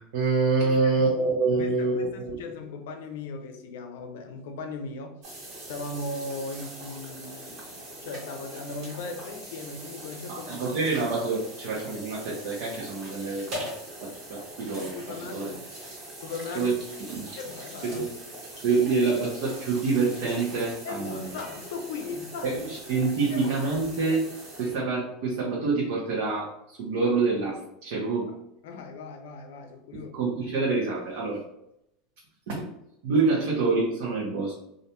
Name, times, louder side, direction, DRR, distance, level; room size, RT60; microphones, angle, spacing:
voice 1, 0.0-2.4 10.3-13.5 14.0-15.5 16.5-16.7 17.1-17.3 17.9-18.1 18.6-21.3 22.4-24.2 24.6-28.3 30.1-31.4 32.5-32.7 33.0-34.5, right 4 dB, 70° right, -4 dB, 0.7 m, -26 dB
voice 2, 0.6-1.2 1.6-5.2 5.7-10.7 14.9-15.7 16.2-16.7 17.4-18.1 20.8-22.6 23.2-23.5 24.1-24.2 28.3-28.4 28.6-30.1, left 3 dB, 85° left, 6 dB, 0.4 m, -38 dB
sound 1, 5.2-24.8, right 1 dB, 50° right, 1.2 m, -42 dB
2.5 x 2.1 x 2.8 m, 0.82 s
supercardioid pair, 140°, 0 cm